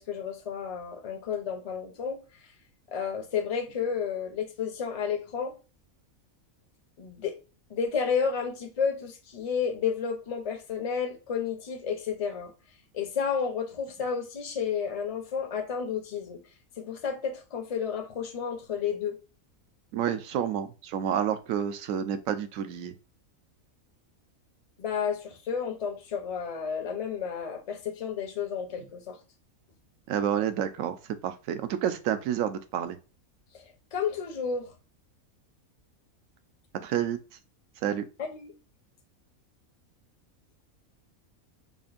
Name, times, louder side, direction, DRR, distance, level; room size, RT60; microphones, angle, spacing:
voice 1, 0.0-2.2 2.9-5.5 7.0-7.4 7.7-12.5 12.9-16.4 16.8-19.2 24.8-29.2 33.9-34.7 38.2-38.5, left 6 dB, 40° left, 0.5 m, -31 dB
voice 2, 19.9-23.0 30.1-33.0 36.8-37.2 37.8-38.0, right 9 dB, 70° right, 0.9 m, -29 dB
5.2 x 2.6 x 2.4 m
omnidirectional pair, 1.5 m